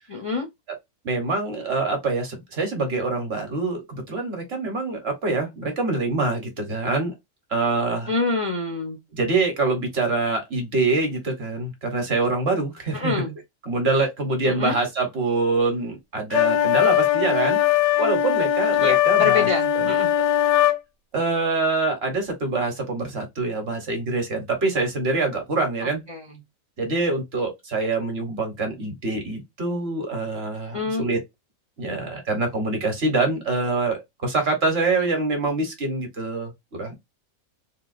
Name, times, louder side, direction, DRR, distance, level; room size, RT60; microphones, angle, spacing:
voice 1, 0.1-0.5 8.1-9.0 12.9-13.3 14.5-14.8 18.8-20.1 26.1-26.2 30.7-31.0, left 3 dB, 45° left, 0.4 m, -26 dB
voice 2, 1.0-7.1 7.5-8.1 9.1-13.1 13.6-17.6 18.0-19.5 19.7-19.8 21.1-26.0 26.8-31.2 31.8-36.5 36.8-36.9, right 3 dB, 50° right, 1.1 m, -25 dB
sound 1, 16.3-20.8, left 12 dB, 80° left, 1.0 m, -20 dB
3.7 x 2.3 x 2.4 m
omnidirectional pair, 1.5 m